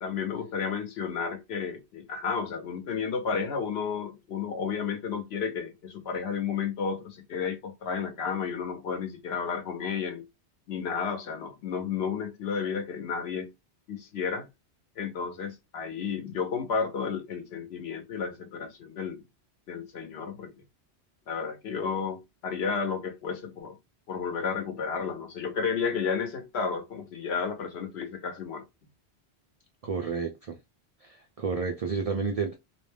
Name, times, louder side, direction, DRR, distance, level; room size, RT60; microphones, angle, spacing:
voice 1, 0.0-10.3 10.7-13.5 13.9-14.5 15.0-19.2 19.7-20.5 21.3-23.8 24.1-28.6, left 6 dB, 70° left, 0.9 m, -32 dB
voice 2, 29.8-30.6 31.0-32.6, right 5 dB, 65° right, 0.3 m, -31 dB
2.4 x 2.1 x 3.2 m
omnidirectional pair, 1.1 m